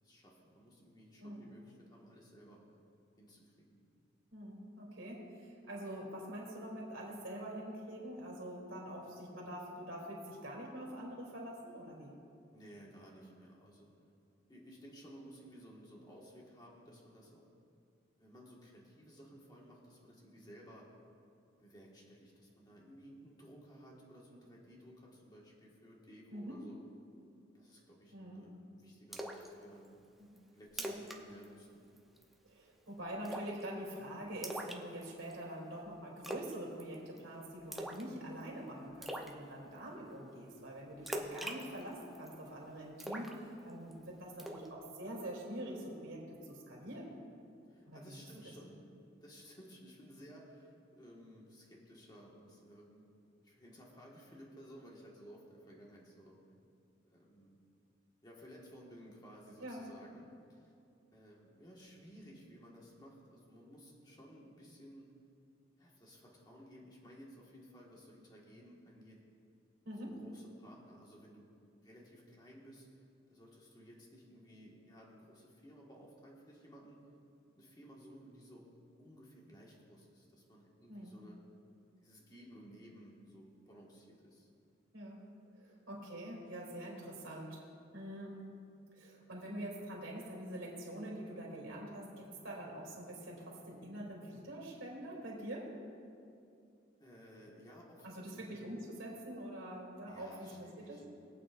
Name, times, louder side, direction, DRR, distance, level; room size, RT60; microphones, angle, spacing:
voice 1, 0.0-2.6 3.2-3.8 12.5-13.9 14.5-17.4 18.2-20.9 21.6-26.8 27.5-29.9 30.5-31.9 47.7-48.8 49.1-53.1 53.4-56.4 57.0-57.5 58.2-60.7 61.1-65.1 65.8-69.2 70.2-71.5 71.8-73.0 73.3-77.0 77.6-78.6 79.0-81.4 82.0-84.5 97.0-98.4 100.1-101.0, equal, 20° left, -3 dB, 1.6 m, -56 dB
voice 2, 4.3-12.1 26.3-26.6 28.1-28.4 30.2-30.4 30.8-31.0 32.4-47.1 47.9-48.2 59.6-59.8 69.8-70.2 80.9-81.2 84.9-85.2 85.5-87.6 87.9-88.4 88.9-95.7 98.0-101.0, right 1 dB, 90° right, -3 dB, 3.0 m, -45 dB
Splash splatter, 29.1-29.5 29.8-29.9 30.4-30.5 30.7-31.2 31.4-31.6 32.0-32.3 33.2-33.6 34.4-35.3 36.2-36.5 36.8-37.2 37.7-38.1 38.4-38.5 39.0-39.3 41.1-42.3 43.0-43.9 44.4-44.7, right 1 dB, ahead, 0.7 m, -41 dB
22.5 x 8.6 x 2.5 m, 2.5 s
head